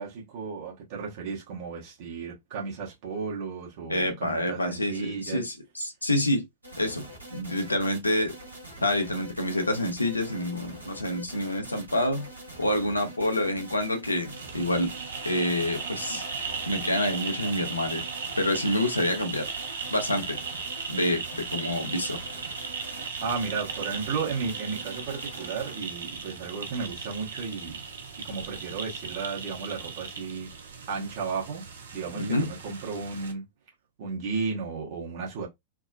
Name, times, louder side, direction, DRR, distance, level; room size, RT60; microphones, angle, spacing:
voice 1, 0.0-5.4 23.2-27.8 28.2-30.5 30.9-31.6 31.9-33.4 34.0-35.5, right 5 dB, 50° right, 1.1 m, -34 dB
voice 2, 3.9-6.4 6.8-8.3 8.8-12.3 12.6-14.9 15.2-18.0 18.4-19.5 19.9-20.4 20.9-22.2 32.2-32.5, left 1 dB, 85° left, 0.7 m, -27 dB
sound 1, 6.6-25.8, right 1 dB, 80° right, 1.1 m, -44 dB
sound 2, 14.3-33.3, right 5 dB, 65° right, 0.5 m, -37 dB
3.5 x 2.0 x 2.3 m
figure-of-eight pair, 90°, 0 cm